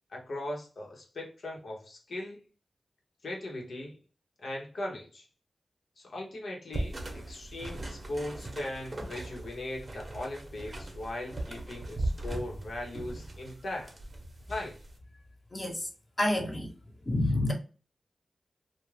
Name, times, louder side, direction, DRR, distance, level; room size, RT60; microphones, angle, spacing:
voice 1, 0.1-2.4 3.2-4.0 4.4-5.2 6.0-13.9 14.5-14.8, left 1 dB, 75° left, 0.9 m, -39 dB
sound 1, 6.7-15.0, right 1 dB, 50° right, 0.8 m, -39 dB
voice 2, 15.5-15.9 16.2-16.7 17.0-17.5, left 1 dB, 45° left, 1.0 m, -28 dB
2.4 x 2.2 x 3.2 m
cardioid pair, 40°, 0 cm